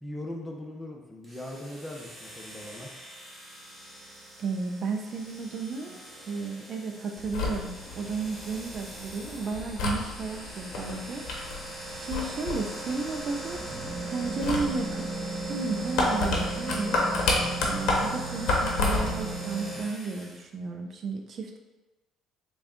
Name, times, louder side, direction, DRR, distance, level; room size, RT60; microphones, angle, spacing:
voice 1, 0.0-2.9, left 1 dB, 5° left, 0 dB, 0.7 m, -39 dB
sound 1, 1.2-20.4, right 2 dB, 10° right, 1.0 m, -38 dB
voice 2, 4.4-11.3 12.0-13.6 14.1-15.1 15.5-17.0 17.7-21.6, right 4 dB, 50° right, 4 dB, 0.4 m, -33 dB
sound 2, 7.2-19.3, left 2 dB, 70° left, 0.8 m, -31 dB
3.5 x 2.2 x 3.6 m, 1.1 s
supercardioid pair, 80°, 0 cm